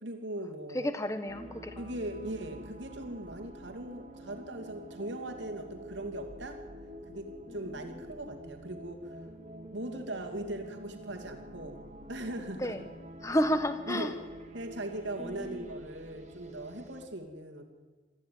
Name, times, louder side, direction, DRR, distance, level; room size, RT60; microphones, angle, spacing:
voice 1, 0.0-0.9 1.8-6.6 7.1-9.3 9.7-11.8 12.1-12.8 13.9-14.1 14.5-17.7, right 1 dB, 70° right, 5 dB, 2.6 m, -39 dB
voice 2, 0.7-1.9 7.5-7.6 7.9-8.0 12.6-12.8 13.2-14.1 15.2-15.7, equal, 15° left, 10 dB, 1.2 m, -32 dB
sound 1, 1.2-17.1, right 1 dB, 35° right, 2.3 m, -48 dB
22.0 x 14.5 x 9.5 m, 1.4 s
head